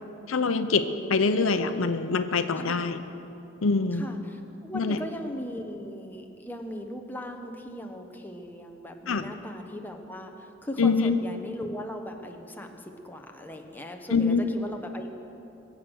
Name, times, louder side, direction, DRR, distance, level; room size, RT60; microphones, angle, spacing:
voice 1, 0.3-3.0 3.6-4.0 4.7-5.0 9.1-9.3 10.8-11.2 14.1-14.5, left 4 dB, 85° left, 9 dB, 0.7 m, -24 dB
voice 2, 3.9-15.2, equal, 10° left, 3 dB, 1.0 m, -38 dB
22.5 x 8.0 x 6.3 m, 2.9 s
head